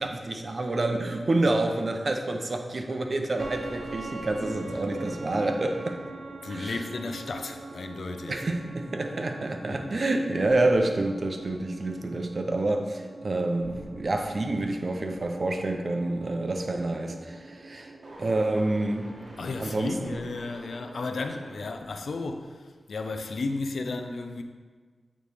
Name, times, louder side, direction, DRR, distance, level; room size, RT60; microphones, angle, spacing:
voice 1, 0.0-6.0 6.5-6.8 8.3-17.9 18.2-19.1 19.6-20.2, right 2 dB, 55° right, 4 dB, 0.6 m, -28 dB
sound 1, 3.4-21.7, right 2 dB, 75° right, 1.0 m, -43 dB
voice 2, 6.4-8.4 9.7-9.8 19.4-24.4, left 3 dB, 80° left, 6 dB, 0.4 m, -34 dB
9.0 x 3.2 x 3.4 m, 1.5 s
cardioid pair, 50°, 0 cm